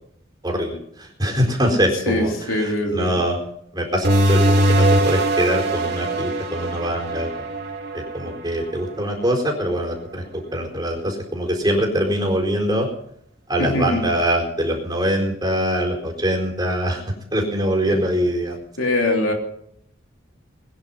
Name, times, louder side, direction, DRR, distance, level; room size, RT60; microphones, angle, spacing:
voice 1, 0.4-3.4 3.7-7.5 7.9-12.9 13.5-17.0 17.3-18.6, equal, 20° right, 0 dB, 4.3 m, -23 dB
voice 2, 2.1-3.2 13.6-14.0 17.8-18.0 18.8-19.3, left 1 dB, 85° left, 2 dB, 3.5 m, -22 dB
sound 1, 4.0-9.2, right 1 dB, 55° right, 2.6 m, -21 dB
21.5 x 10.5 x 5.7 m, 0.70 s
head